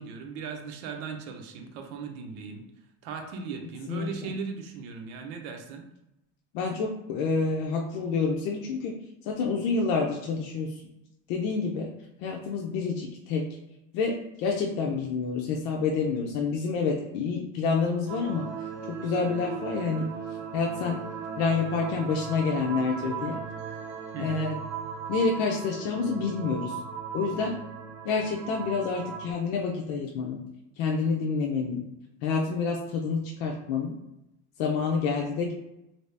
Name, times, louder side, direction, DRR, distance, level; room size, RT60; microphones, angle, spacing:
voice 1, 0.0-2.7 3.0-5.8 24.1-24.5, right 5 dB, 85° right, 3 dB, 0.8 m, -38 dB
voice 2, 6.5-8.9 9.3-10.8 11.3-11.9 12.2-13.5 13.9-18.5 18.9-20.1 20.5-21.0 21.4-23.4 24.2-24.6 25.1-26.8 27.1-27.6 28.0-30.4 30.8-31.8 32.2-33.9 34.6-35.5, left 4 dB, 85° left, 0 dB, 0.6 m, -28 dB
sound 1, 18.1-29.3, right 6 dB, 45° right, 0.6 m, -37 dB
2.9 x 2.7 x 3.3 m, 0.89 s
cardioid pair, 170°, 39 cm